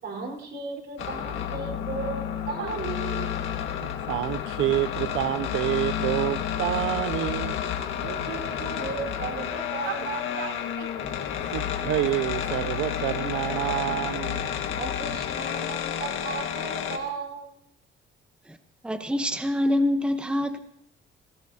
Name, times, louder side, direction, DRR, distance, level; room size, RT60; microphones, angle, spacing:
voice 1, 0.0-3.3 7.4-7.5 8.2-10.7 14.8-17.5, right 4 dB, 65° right, 0 dB, 4.3 m, -36 dB
sound 1, 1.0-17.0, left 9 dB, 85° left, 1.7 m, -31 dB
voice 2, 3.8-7.6 8.0-8.3 9.9-11.2 11.5-14.5, right 14 dB, 90° right, 11 dB, 0.5 m, -29 dB
voice 3, 18.8-20.6, left 1 dB, 5° right, 8 dB, 0.9 m, -25 dB
20.5 x 18.0 x 2.8 m, 0.72 s
cardioid pair, 90°, 20 cm